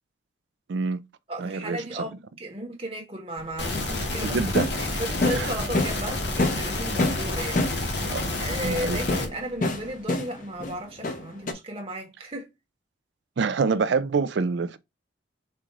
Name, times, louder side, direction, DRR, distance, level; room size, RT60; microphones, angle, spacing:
voice 1, 0.7-1.0 1.4-2.0 4.2-4.7 5.4-5.5 8.1-8.3 8.6-9.0 13.4-14.8, right 4 dB, 65° right, 0.4 m, -26 dB
voice 2, 1.3-4.4 4.8-12.5, right 1 dB, 30° right, 1.2 m, -35 dB
sound 1, 3.4-6.1 6.4-8.1 8.9-10.7 11.0-11.5, left 2 dB, 45° left, 0.7 m, -28 dB
sound 2, 3.6-9.3, left 2 dB, 60° left, 1.3 m, -29 dB
4.4 x 2.5 x 4.6 m
head